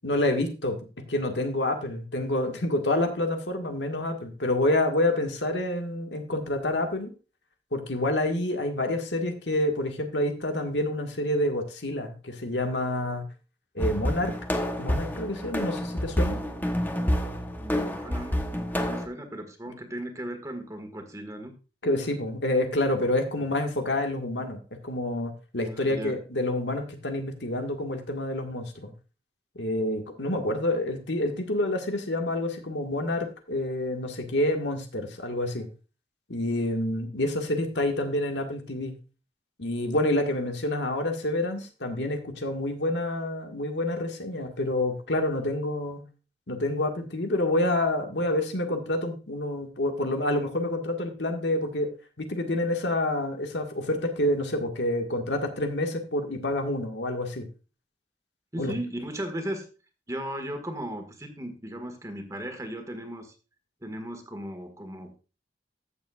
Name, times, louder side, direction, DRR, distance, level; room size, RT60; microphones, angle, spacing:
voice 1, 0.0-0.8 1.1-7.1 7.7-13.2 13.8-14.3 14.8-16.4 21.8-28.9 29.6-35.7 36.3-38.9 39.6-46.0 46.5-51.9 52.2-57.5 58.6-58.7, left 1 dB, 80° left, 4 dB, 1.8 m, -28 dB
sound 1, 13.8-19.1, equal, 10° left, 1.0 m, -28 dB
voice 2, 17.6-21.5 25.6-26.2 58.5-59.7 60.1-63.3 63.8-65.2, right 1 dB, 20° right, 6 dB, 1.7 m, -36 dB
14.5 x 7.2 x 2.4 m, 0.32 s
head